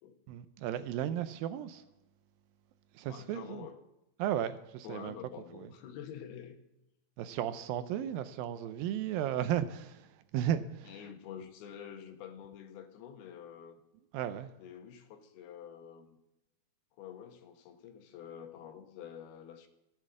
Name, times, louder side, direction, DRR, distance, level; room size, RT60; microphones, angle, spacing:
voice 1, 0.3-1.8 3.0-3.7 4.2-5.1 7.2-10.9 14.1-14.5, right 10 dB, 80° right, 2.3 m, -34 dB
voice 2, 3.1-3.8 4.8-6.6 10.8-13.8 14.6-16.2 16.9-19.7, left 8 dB, 85° left, 3.2 m, -48 dB
15.0 x 8.3 x 7.7 m
omnidirectional pair, 4.4 m